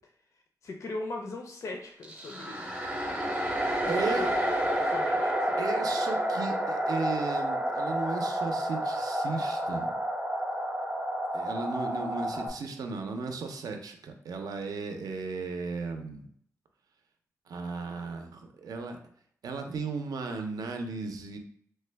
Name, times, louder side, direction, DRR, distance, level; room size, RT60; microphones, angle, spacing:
voice 1, 0.6-2.7 3.8-4.3 4.9-5.6, left 2 dB, 55° left, 2 dB, 0.4 m, -39 dB
sound 1, 2.0-12.5, right 1 dB, 20° right, 0.6 m, -30 dB
voice 2, 3.9-4.3 5.6-9.9 11.3-16.3 17.5-19.0 19.4-21.4, right 4 dB, 80° right, 5 dB, 0.5 m, -35 dB
3.2 x 2.1 x 3.3 m, 0.63 s
wide cardioid pair, 130°, 6 cm